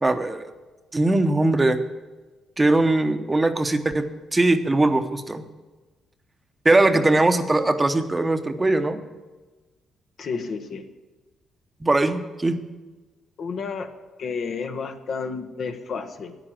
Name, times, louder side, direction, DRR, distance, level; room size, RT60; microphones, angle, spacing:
voice 1, 0.0-0.4 0.9-1.8 2.6-4.1 4.3-5.4 6.6-9.0 11.8-12.6, right 2 dB, 20° right, 8 dB, 0.9 m, -20 dB
voice 2, 10.2-10.8 13.4-13.9 14.2-16.4, left 5 dB, 55° left, 7 dB, 1.1 m, -31 dB
9.8 x 9.1 x 7.6 m, 1.2 s
cardioid pair, 90°, 0 cm